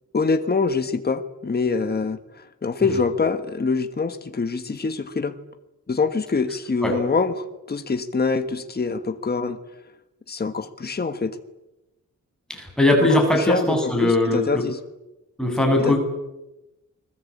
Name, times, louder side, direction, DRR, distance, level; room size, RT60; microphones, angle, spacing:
voice 1, 0.1-2.2 2.6-5.4 5.9-9.6 10.3-11.4 13.3-14.8 15.8-16.0, left 4 dB, 30° left, 8 dB, 1.5 m, -24 dB
voice 2, 12.5-14.6 15.4-16.0, left 1 dB, ahead, 2 dB, 7.8 m, -20 dB
29.0 x 21.5 x 8.6 m, 0.97 s
wide cardioid pair, 150°, 31 cm